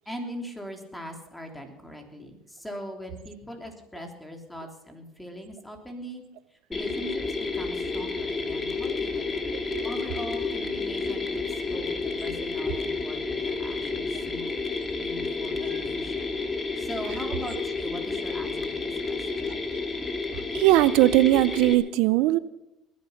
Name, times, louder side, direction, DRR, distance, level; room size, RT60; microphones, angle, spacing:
voice 1, 0.0-6.2 6.5-9.3 9.8-14.5 15.0-16.3 16.8-19.6, equal, 5° left, 3 dB, 3.3 m, -41 dB
Mechanisms, 6.7-21.7, left 3 dB, 25° left, 2.3 m, -30 dB
voice 2, 20.5-22.4, right 17 dB, 80° right, 17 dB, 0.5 m, -20 dB
20.5 x 10.5 x 5.8 m, 0.87 s
supercardioid pair, 95°, 0 cm